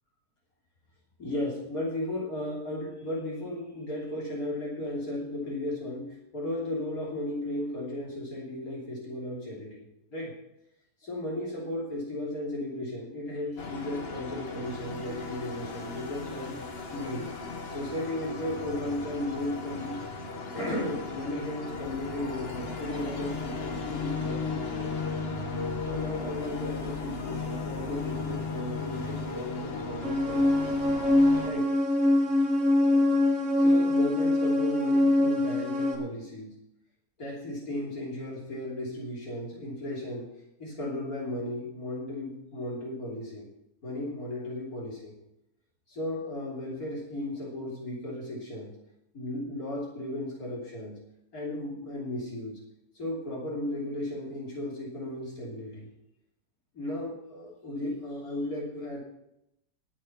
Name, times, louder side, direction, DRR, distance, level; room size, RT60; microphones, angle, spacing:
voice 1, 1.2-9.9 10.1-10.3 11.0-16.5 16.9-17.3 17.7-20.0 20.5-25.1 25.8-30.7 31.4-31.7 33.6-36.6 37.2-40.2 40.6-43.5 43.8-45.1 45.9-48.7 49.1-51.0 51.3-52.6 53.0-55.9 56.7-59.0, left 1 dB, 65° left, -5 dB, 3.8 m, -35 dB
sound 1, 13.6-31.5, left 4 dB, 40° left, 1.4 m, -36 dB
sound 2, 30.0-36.0, left 1 dB, 50° right, 2.1 m, -24 dB
19.0 x 6.4 x 5.9 m, 0.82 s
omnidirectional pair, 1.7 m